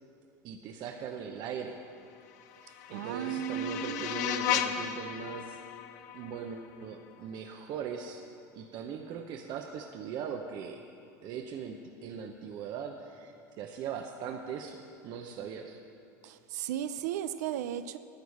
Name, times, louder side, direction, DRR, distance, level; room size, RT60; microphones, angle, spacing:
voice 1, 0.4-1.8 2.9-5.6 6.1-8.2 8.6-10.8 11.2-15.8 16.2-16.3, right 7 dB, 55° right, 0.8 m, -40 dB
sound 1, 2.2-7.2, left 9 dB, 70° left, 0.7 m, -35 dB
voice 2, 2.9-4.2 16.2-18.0, right 10 dB, 75° right, 0.5 m, -35 dB
10.5 x 9.4 x 7.2 m
hypercardioid pair, 85°, 9 cm